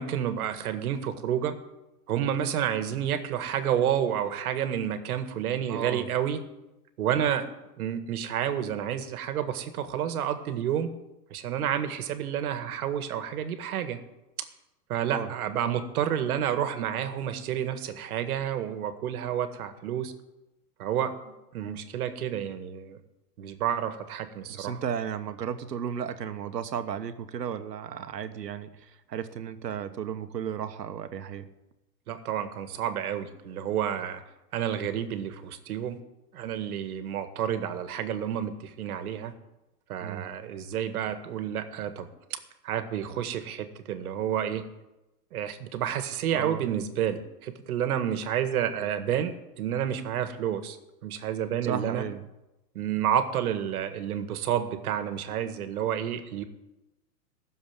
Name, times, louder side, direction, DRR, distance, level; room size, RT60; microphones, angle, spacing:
voice 1, 0.0-1.5 2.1-6.4 7.0-7.5 7.8-10.9 11.3-14.0 14.9-20.1 20.8-21.1 21.5-23.0 23.4-24.8 32.1-34.2 34.5-36.0 36.3-39.3 39.9-42.1 42.6-44.7 45.3-50.8 51.0-52.0 52.8-56.4, right 9 dB, 65° right, 9 dB, 1.9 m, -30 dB
voice 2, 5.7-6.1 15.1-15.3 24.5-31.5 40.0-40.3 46.3-46.7 51.6-52.2, right 8 dB, 90° right, 10 dB, 1.4 m, -34 dB
16.0 x 7.2 x 9.0 m, 0.98 s
hypercardioid pair, 130°, 47 cm